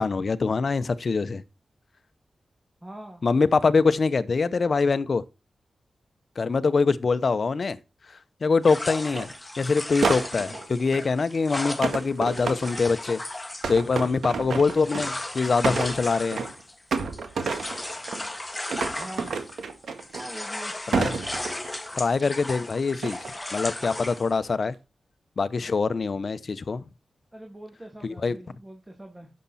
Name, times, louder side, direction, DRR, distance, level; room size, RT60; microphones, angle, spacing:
voice 1, 0.0-1.4 3.2-5.2 6.4-7.8 8.4-9.3 9.6-13.2 13.7-16.4 20.9-21.2 22.0-23.2 23.5-24.7 25.4-26.8 28.0-28.4, left 4 dB, 60° left, 0.8 m, -24 dB
voice 2, 2.8-3.3 19.0-19.3 20.1-20.7 27.3-29.3, right 1 dB, 15° right, 2.3 m, -42 dB
sound 1, 8.6-19.7 20.0-24.3, left 1 dB, 20° left, 1.4 m, -36 dB
sound 2, 9.1-9.3 10.0-11.1 11.8-13.0 13.6-15.2 15.5-16.6 16.9-18.3 18.7-20.5 20.9-21.9 23.0-23.4 23.8-24.2, right 5 dB, 85° right, 1.6 m, -30 dB
10.0 x 7.4 x 4.2 m
cardioid pair, 55°, 0 cm